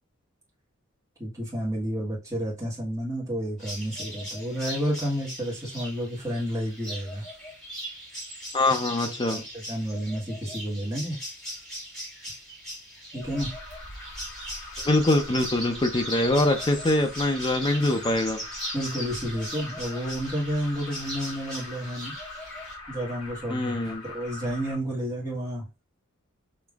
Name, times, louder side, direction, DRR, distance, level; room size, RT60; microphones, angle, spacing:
voice 1, 1.2-7.2 9.3-11.2 13.1-13.5 18.7-22.1 22.9-25.6, equal, 15° right, 1.5 m, -31 dB
sound 1, 3.6-22.7, equal, 5° left, 1.8 m, -39 dB
voice 2, 8.5-9.4 14.8-18.4 23.5-24.0, left 2 dB, 25° left, 0.6 m, -24 dB
Alarm, 13.2-24.7, left 2 dB, 65° left, 2.1 m, -42 dB
5.2 x 2.9 x 2.4 m
head